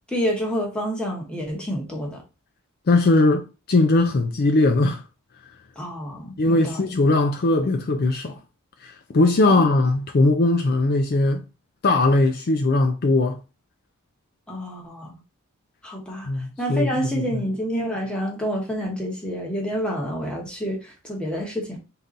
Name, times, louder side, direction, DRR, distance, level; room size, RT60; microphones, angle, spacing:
voice 1, 0.1-2.2 5.8-6.9 9.5-9.7 14.5-15.1 15.8-16.3 16.6-21.8, equal, 5° left, 1.1 m, -28 dB
voice 2, 2.9-5.0 6.4-8.4 8.8-11.4 11.8-13.4 16.3-17.4, left 2 dB, 45° left, 0.4 m, -20 dB
3.6 x 2.8 x 3.8 m
head